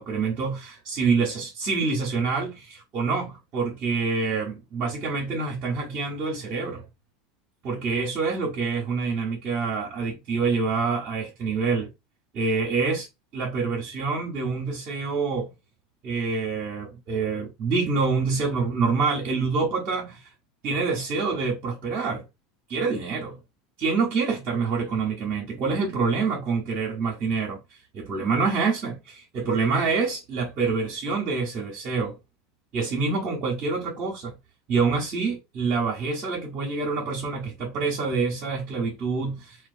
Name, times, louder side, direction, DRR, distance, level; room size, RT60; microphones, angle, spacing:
voice 1, 0.0-6.8 7.6-11.9 12.3-13.1 13.3-15.5 16.0-20.3 20.6-22.2 22.7-23.4 23.8-27.6 27.9-32.2 32.7-34.4 34.7-39.6, right 4 dB, 50° right, 0.7 m, -26 dB
2.3 x 2.2 x 2.4 m
hypercardioid pair, 85°, 0 cm